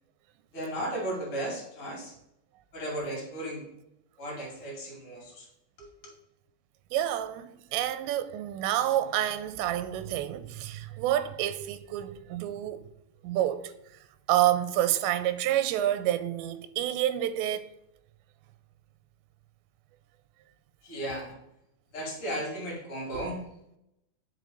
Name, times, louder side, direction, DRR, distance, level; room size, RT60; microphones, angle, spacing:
voice 1, 0.5-2.1 2.7-3.7 4.2-5.5 5.8-6.2 20.8-21.4 21.9-23.4, right 1 dB, 40° left, 2.7 m, -35 dB
voice 2, 6.9-12.8 13.2-13.7 14.3-17.7, right 12 dB, 90° right, 2.8 m, -28 dB
8.4 x 5.7 x 3.9 m
omnidirectional pair, 5.0 m